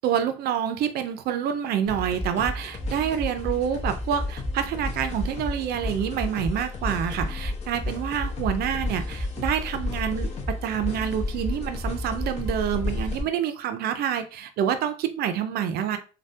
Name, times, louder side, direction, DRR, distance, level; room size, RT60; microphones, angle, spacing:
voice 1, 0.0-16.0, right 9 dB, 70° right, 0.5 m, -27 dB
sound 1, 1.9-13.2, left 2 dB, 40° left, 1.0 m, -31 dB
3.3 x 2.2 x 2.7 m
cardioid pair, 110°, 17 cm